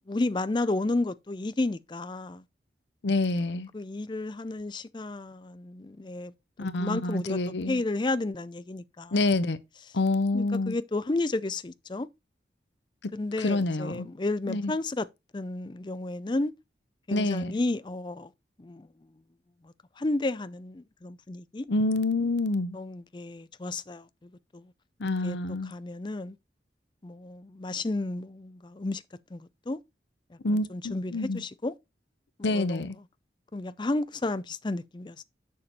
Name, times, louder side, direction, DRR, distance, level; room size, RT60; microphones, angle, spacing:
voice 1, 0.1-2.4 3.7-6.3 6.8-9.1 10.3-12.1 13.1-15.1 15.3-16.5 17.1-18.3 18.6-18.9 19.6-21.7 22.7-24.6 25.2-25.4 25.6-26.4 27.0-29.0 29.3-29.8 30.3-31.7 32.4-33.0 33.5-35.2, left 2 dB, 25° left, 0.5 m, -32 dB
voice 2, 3.0-3.7 6.6-7.8 9.1-9.6 9.9-10.8 13.4-14.1 14.5-14.7 17.1-17.5 21.7-22.8 25.0-25.7 30.4-31.4 32.4-33.0, left 2 dB, 85° left, 0.7 m, -27 dB
7.0 x 6.6 x 4.2 m
head